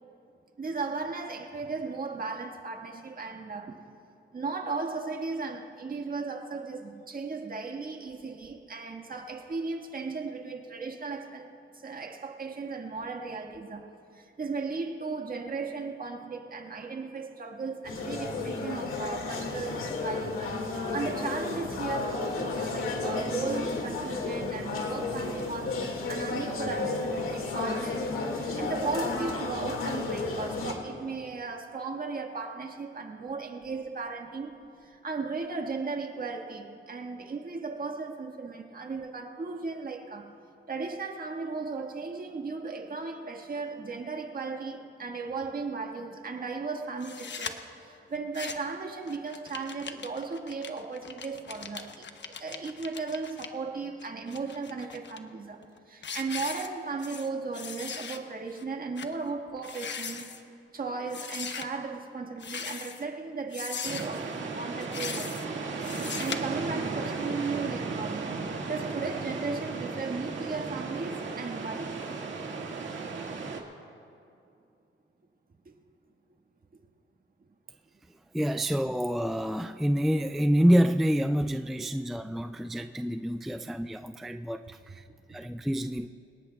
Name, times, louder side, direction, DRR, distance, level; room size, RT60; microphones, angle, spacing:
voice 1, 0.6-3.8 4.3-11.5 11.8-13.9 14.1-20.5 20.9-34.5 34.8-40.3 40.7-47.6 47.8-52.1 52.4-60.3 60.7-65.4 66.1-71.9, right 4 dB, 40° right, 3 dB, 1.6 m, -36 dB
sound 1, 17.8-30.7, left 3 dB, 80° left, 2.0 m, -32 dB
sound 2, 47.0-47.5 48.1-48.7 49.1-53.5 54.0-55.2 55.6-55.8 56.0-57.3 57.5-58.2 58.5-58.6 59.0-59.1 59.6-60.4 61.1-61.7 62.4-63.1 63.5-64.2 64.8-65.5 65.8-66.4, left 6 dB, 60° left, 1.0 m, -39 dB
sound 3, 63.8-73.6, right 4 dB, 65° right, 1.8 m, -35 dB
voice 2, 78.3-86.1, equal, ahead, 8 dB, 0.3 m, -27 dB
26.5 x 18.5 x 2.3 m, 2.6 s
cardioid pair, 100°, 21 cm